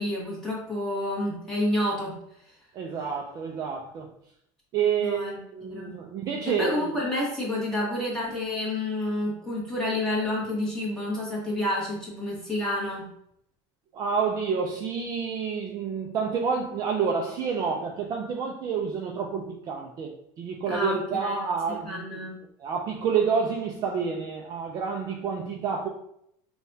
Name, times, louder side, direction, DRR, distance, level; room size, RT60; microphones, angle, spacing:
voice 1, 0.0-2.1 5.0-5.9 6.4-13.0 20.7-21.4 21.8-22.4, left 1 dB, 5° left, 1.3 m, -29 dB
voice 2, 2.7-4.1 4.7-5.2 5.5-6.9 13.9-20.1 20.4-22.2 22.6-25.9, right 6 dB, 35° right, 0.4 m, -28 dB
5.4 x 2.3 x 2.6 m
cardioid pair, 165°, 11 cm